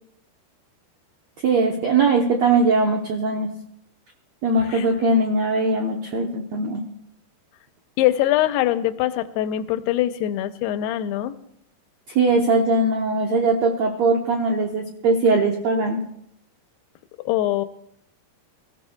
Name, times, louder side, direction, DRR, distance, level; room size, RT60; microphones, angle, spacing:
voice 1, 1.4-3.5 4.4-6.8 12.1-16.0, right 3 dB, 75° right, 1 dB, 1.5 m, -20 dB
voice 2, 8.0-11.3 17.3-17.7, left 13 dB, 85° left, 10 dB, 2.7 m, -22 dB
25.5 x 14.5 x 2.3 m, 0.73 s
omnidirectional pair, 4.6 m